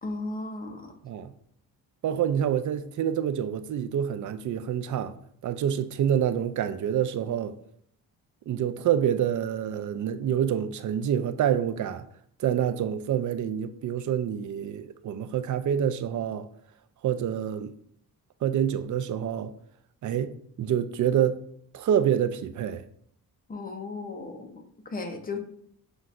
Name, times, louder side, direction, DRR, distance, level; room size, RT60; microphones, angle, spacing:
voice 1, 0.0-0.9 23.5-25.4, left 3 dB, 25° left, 0.8 m, -35 dB
voice 2, 2.0-5.2 5.4-7.5 8.5-12.0 12.4-16.5 17.0-17.7 18.4-19.5 20.0-21.4 21.7-22.8, right 9 dB, 55° right, 0.4 m, -27 dB
7.4 x 2.6 x 2.5 m
cardioid pair, 95°, 37 cm